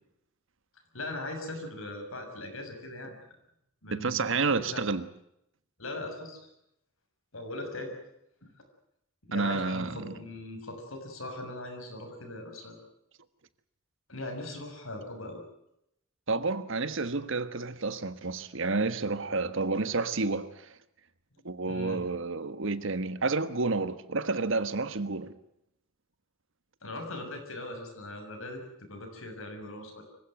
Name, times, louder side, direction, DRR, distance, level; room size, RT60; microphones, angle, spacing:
voice 1, 0.9-3.2 3.8-4.2 4.5-4.8 5.8-6.4 7.3-7.9 8.4-8.5 9.3-12.8 14.1-15.4 21.7-22.0 26.8-30.0, left 1 dB, 80° left, 6.9 m, -40 dB
voice 2, 3.9-5.0 9.3-10.1 16.3-20.7 21.4-25.3, right 3 dB, 65° right, 1.4 m, -30 dB
25.0 x 16.0 x 9.2 m
head